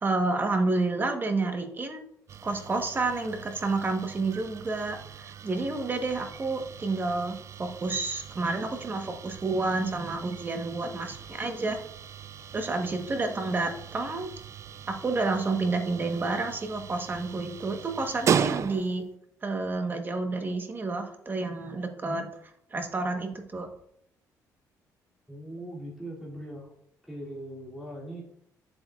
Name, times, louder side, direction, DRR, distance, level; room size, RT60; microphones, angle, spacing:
voice 1, 0.0-2.0 2.4-11.8 12.5-14.3 14.9-19.0 19.4-22.3 22.7-23.7, right 3 dB, 30° right, 5 dB, 1.2 m, -30 dB
sound 1, 2.3-19.1, right 7 dB, 45° right, 0.4 m, -37 dB
voice 2, 25.3-26.7 27.0-28.2, right 1 dB, 5° right, -5 dB, 2.8 m, -40 dB
7.8 x 7.8 x 2.5 m, 0.70 s
cardioid pair, 100°, 7 cm